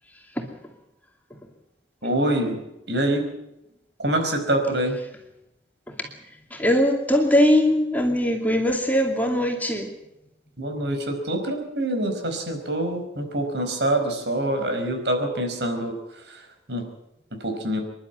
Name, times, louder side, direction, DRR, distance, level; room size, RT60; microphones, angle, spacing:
voice 1, 2.0-3.3 4.0-5.0 10.6-16.8 17.4-17.8, right 1 dB, 80° right, 5.0 m, -26 dB
voice 2, 6.5-10.0, equal, 10° left, 2.4 m, -21 dB
26.5 x 11.5 x 9.4 m
head